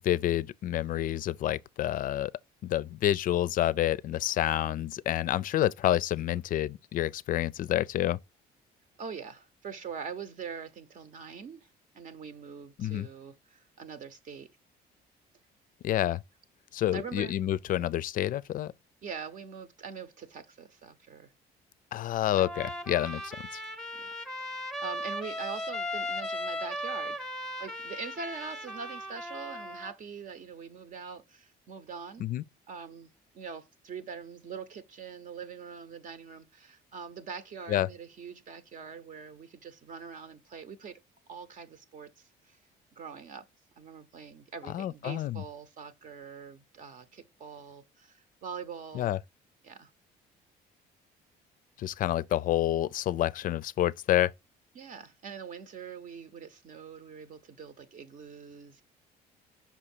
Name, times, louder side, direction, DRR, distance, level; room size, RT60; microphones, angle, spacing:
voice 1, 0.0-2.3 2.6-8.2 12.8-13.1 15.8-16.2 16.7-18.7 21.9-23.6 32.2-32.4 37.7-37.9 44.7-45.4 48.9-49.2 51.8-54.3, left 13 dB, 55° left, 0.4 m, -28 dB
voice 2, 9.0-11.7 11.9-14.5 16.9-17.3 17.7-17.8 19.0-21.3 24.0-24.1 24.4-27.3 27.6-32.3 32.7-41.0 41.3-42.6 43.0-43.5 43.8-49.2 49.6-49.9 54.7-58.8, right 6 dB, 50° right, 0.9 m, -43 dB
Trumpet, 22.3-29.9, left 1 dB, 5° left, 0.9 m, -37 dB
5.7 x 4.9 x 4.4 m
cardioid pair, 110°, 17 cm